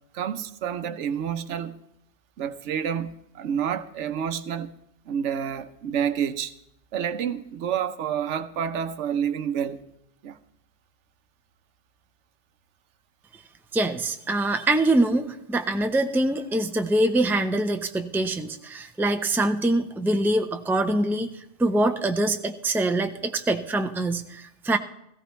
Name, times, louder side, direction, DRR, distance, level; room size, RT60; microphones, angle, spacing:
voice 1, 0.1-1.8 2.4-4.7 5.1-6.5 6.9-9.8 10.2-10.4, right 8 dB, 80° right, 1.1 m, -29 dB
voice 2, 13.7-21.3 21.6-24.8, right 2 dB, ahead, 0.5 m, -24 dB
17.5 x 15.5 x 3.1 m
omnidirectional pair, 1.2 m